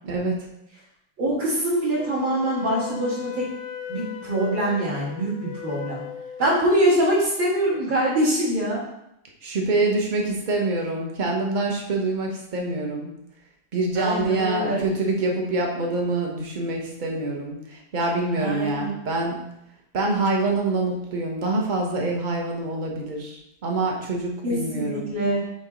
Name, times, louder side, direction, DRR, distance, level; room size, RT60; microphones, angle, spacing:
voice 1, 0.0-0.3 9.4-13.1 13.7-19.4 19.9-25.1, right 2 dB, 50° right, 0 dB, 0.5 m, -25 dB
voice 2, 1.2-3.5 3.9-6.0 6.4-8.8 14.0-14.8 18.4-18.9 24.4-25.4, right 1 dB, 65° right, -9 dB, 2.7 m, -24 dB
Wind instrument woodwind instrument, 2.0-6.7, left 10 dB, 85° left, 1.4 m, -37 dB
6.9 x 3.0 x 4.9 m, 0.81 s
omnidirectional pair, 2.2 m